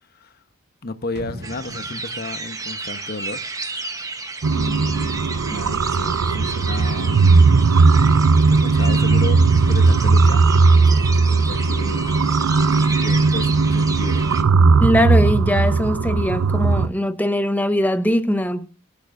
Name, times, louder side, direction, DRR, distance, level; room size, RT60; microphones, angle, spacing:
voice 1, 0.8-3.4 4.5-7.3 8.2-10.4 11.3-12.1 13.0-14.3, left 2 dB, 45° left, 1.0 m, -33 dB
sound 1, 1.2-4.0 4.3-4.4, right 1 dB, 50° right, 1.9 m, -41 dB
sound 2, 1.4-14.4, right 3 dB, 15° right, 1.1 m, -32 dB
sound 3, 4.4-16.9, right 4 dB, 85° right, 0.6 m, -17 dB
voice 2, 14.8-18.7, equal, 10° left, 0.9 m, -21 dB
24.0 x 8.5 x 2.6 m
head